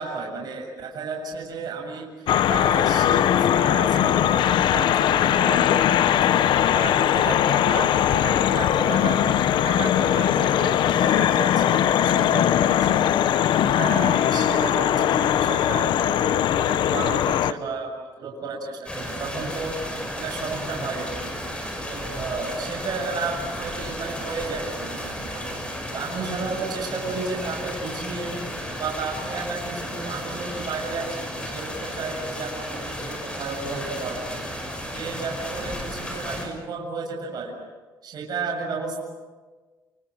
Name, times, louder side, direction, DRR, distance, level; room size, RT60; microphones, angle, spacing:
voice 1, 0.0-13.0 13.6-19.8 20.1-21.3 21.8-25.5 25.9-28.4 28.8-34.4 34.9-37.5 38.0-39.0, right 4 dB, 55° right, 0 dB, 7.3 m, -33 dB
sound 1, 2.3-17.5, left 10 dB, 70° left, 0.9 m, -20 dB
sound 2, 18.9-36.5, equal, 10° left, 6.2 m, -33 dB
29.0 x 29.0 x 6.4 m, 1.4 s
cardioid pair, 145°, 8 cm